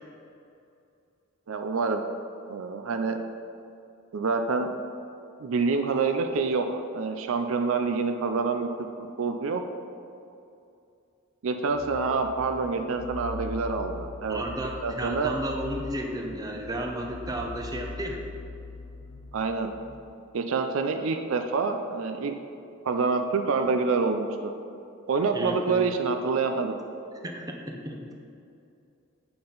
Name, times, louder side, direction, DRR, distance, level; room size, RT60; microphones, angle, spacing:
voice 1, 1.5-2.0 2.5-3.2 4.1-4.9 5.4-8.7 9.2-9.6 11.4-14.4 14.8-15.4 19.3-19.7 20.3-22.3 22.8-24.5 25.1-26.8, right 4 dB, 65° right, 6 dB, 0.4 m, -27 dB
sound 1, 11.7-20.0, left 3 dB, 70° left, 0.9 m, -41 dB
voice 2, 14.3-18.2 25.3-25.9 27.2-28.1, right 1 dB, 15° right, 1 dB, 0.7 m, -33 dB
8.5 x 5.8 x 3.9 m, 2.6 s
head